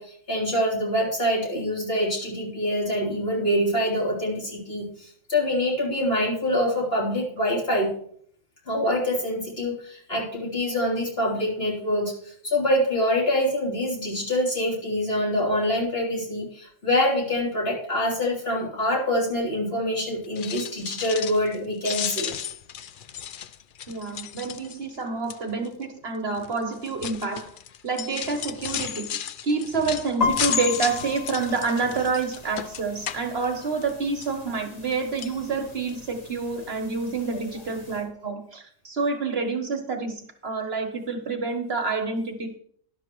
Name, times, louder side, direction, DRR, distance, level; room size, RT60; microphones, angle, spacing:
voice 1, 0.0-8.0 8.7-22.3 37.3-37.4, left 1 dB, 45° left, -4 dB, 3.7 m, -25 dB
sound 1, 20.2-21.6 21.8-25.0 25.3-25.7 26.4-33.9 34.2-34.9 35.2-35.4 35.9-36.0 36.3-36.4, left 9 dB, 65° left, 0.5 m, -33 dB
voice 2, 23.9-27.5 27.8-42.6, right 4 dB, 50° right, 6 dB, 1.2 m, -28 dB
sound 2, 30.2-38.0, left 4 dB, 30° left, 1.4 m, -36 dB
12.5 x 11.0 x 3.1 m, 0.62 s
omnidirectional pair, 1.4 m